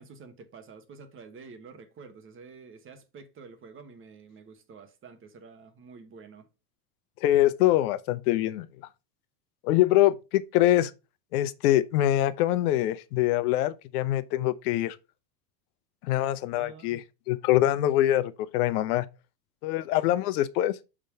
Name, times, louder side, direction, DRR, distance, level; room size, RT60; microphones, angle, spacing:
voice 1, 0.0-6.5 16.5-17.0, right 4 dB, 25° right, 1.1 m, -48 dB
voice 2, 7.2-8.7 9.6-10.9 11.3-15.0 16.0-19.1 19.6-20.8, left 14 dB, 60° left, 0.7 m, -24 dB
6.5 x 3.7 x 4.5 m
hypercardioid pair, 115°, 50 cm